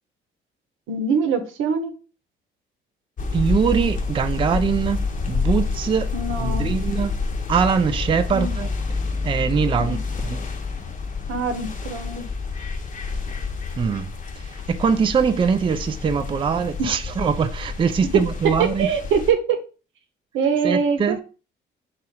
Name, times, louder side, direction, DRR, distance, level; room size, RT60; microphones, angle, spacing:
voice 1, 0.9-1.9 6.1-6.7 8.3-8.5 9.8-10.0 11.3-12.2 16.8-16.9 18.6-19.6 20.3-21.2, right 5 dB, 80° right, 0.8 m, -23 dB
sound 1, 3.2-19.3, left 4 dB, 40° left, 0.7 m, -28 dB
voice 2, 3.3-6.1 6.4-7.1 7.5-8.7 9.2-10.0 10.2-10.4 13.8-14.1 14.4-18.9 20.6-21.2, right 6 dB, 25° right, 0.3 m, -22 dB
3.9 x 2.5 x 4.3 m
cardioid pair, 90°, 20 cm